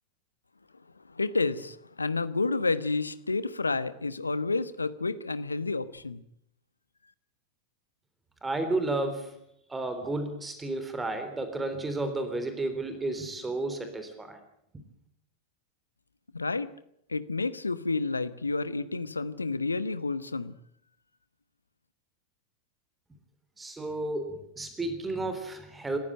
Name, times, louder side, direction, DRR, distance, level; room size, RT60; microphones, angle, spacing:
voice 1, 1.1-6.2 16.3-16.7 17.1-20.5, left 3 dB, 80° left, 14 dB, 1.2 m, -30 dB
voice 2, 8.4-9.4 9.7-14.4 23.6-26.0, right 2 dB, 10° right, 9 dB, 3.6 m, -32 dB
27.0 x 15.0 x 9.1 m, 0.74 s
figure-of-eight pair, 90°, 0 cm